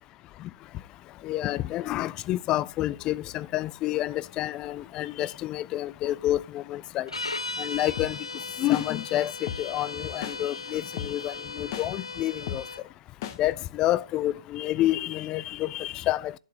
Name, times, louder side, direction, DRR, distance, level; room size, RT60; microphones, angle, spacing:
voice 1, 1.2-7.1 7.6-8.2 8.6-12.6 13.4-16.3, left 14 dB, 25° left, 0.3 m, -29 dB
sound 1, 7.1-12.8, left 3 dB, 90° left, 0.5 m, -37 dB
sound 2, 8.0-8.1 8.7-8.9 9.5-9.6 10.2-10.4 11.0-11.1 11.7-11.9 12.5-12.6 13.2-13.4, left 9 dB, 40° left, 1.0 m, -33 dB
11.5 x 7.8 x 2.9 m
figure-of-eight pair, 125°, 3 cm